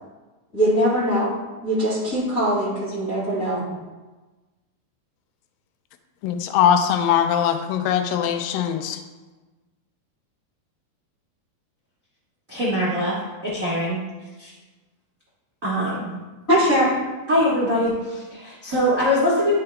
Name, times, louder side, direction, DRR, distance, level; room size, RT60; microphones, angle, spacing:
voice 1, 0.5-1.3 1.6-3.6 16.5-17.0, equal, 25° left, -10 dB, 2.0 m, -21 dB
voice 2, 6.2-9.0, left 9 dB, 80° left, 7 dB, 2.1 m, -21 dB
voice 3, 12.5-13.2 13.4-14.0 14.4-14.5 15.6-16.1 17.3-19.5, equal, 70° right, -7 dB, 0.7 m, -22 dB
12.5 x 5.7 x 2.3 m, 1.2 s
omnidirectional pair, 4.5 m